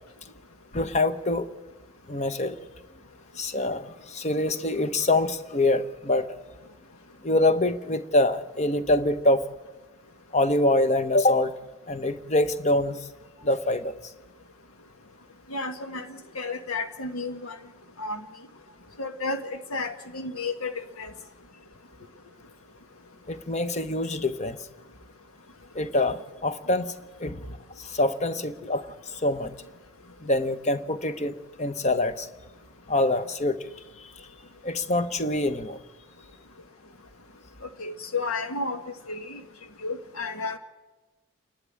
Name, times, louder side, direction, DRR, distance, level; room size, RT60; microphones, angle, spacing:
voice 1, 0.7-1.5 2.1-2.6 3.4-6.4 7.2-9.4 10.3-11.5 11.9-13.1 13.4-14.0 23.3-24.6 25.7-26.9 27.2-27.5 27.8-29.5 30.2-32.3 32.9-33.7 34.0-34.3 34.6-35.8, left 2 dB, 30° left, 12 dB, 0.9 m, -25 dB
voice 2, 15.5-16.1 16.3-17.5 18.0-18.2 19.0-19.4 19.7-20.7 21.0-21.1 37.8-38.8 39.1-39.4 39.8-40.6, left 3 dB, 75° left, 7 dB, 1.4 m, -31 dB
28.5 x 12.0 x 8.8 m, 1.2 s
head